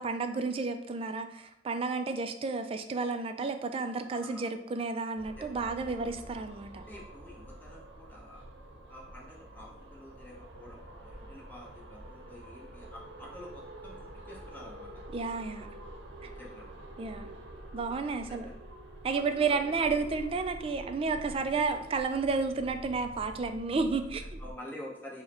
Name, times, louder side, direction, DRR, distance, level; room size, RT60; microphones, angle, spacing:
voice 1, 0.0-6.8 15.1-15.7 16.2-16.3 17.0-17.3 17.7-18.5 19.0-24.4, right 4 dB, 30° right, 7 dB, 0.3 m, -31 dB
voice 2, 4.1-4.5 5.4-6.1 6.9-8.4 8.9-13.9 14.3-14.9 16.2-16.6 18.2-18.5 19.1-19.6 24.2-25.2, left 1 dB, 10° left, -4 dB, 1.0 m, -49 dB
sound 1, 5.2-24.5, right 1 dB, 75° right, 0.7 m, -47 dB
4.5 x 2.2 x 4.3 m, 0.79 s
head